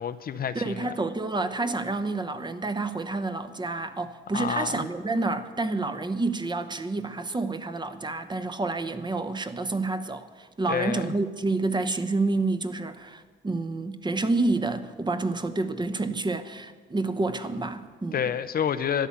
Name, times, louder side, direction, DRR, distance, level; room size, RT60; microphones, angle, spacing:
voice 1, 0.0-0.9 4.3-4.8 10.7-11.1 18.1-19.1, left 8 dB, 50° left, 0.6 m, -29 dB
voice 2, 0.5-18.2, right 3 dB, 20° right, 0.9 m, -29 dB
12.5 x 10.0 x 7.3 m
cardioid pair, 90°, 20 cm